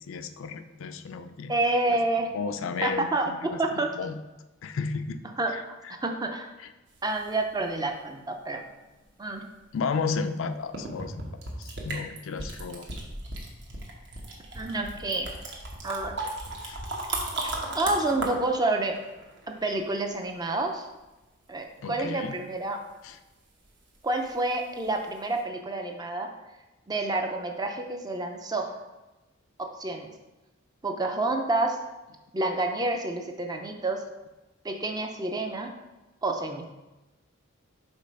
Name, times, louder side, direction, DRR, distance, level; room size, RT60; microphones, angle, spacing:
voice 1, 0.1-1.5 1.9-2.0 2.3-3.6 4.0-4.2 4.6-5.2 5.5-5.9 6.6-6.7 9.7-11.2 11.6-12.9 16.6-16.8 21.8-22.4 23.0-23.2, left 5 dB, 65° left, 10 dB, 0.4 m, -33 dB
voice 2, 1.5-2.3 2.8-3.3 3.6-3.9 5.4-6.5 7.0-8.6 9.2-9.4 14.5-15.3 15.8-16.1 17.4-18.9 19.5-20.9 21.5-22.8 24.0-26.3 26.9-28.7 29.6-30.1 30.8-31.8 32.3-34.0 34.6-35.7 36.2-36.6, right 2 dB, 20° right, 4 dB, 0.5 m, -29 dB
sound 1, 6.9-7.9 10.2-10.3 10.7-19.8 24.8-24.9 25.3-25.4, right 2 dB, 55° right, 1.1 m, -36 dB
5.3 x 4.1 x 5.2 m, 1.1 s
head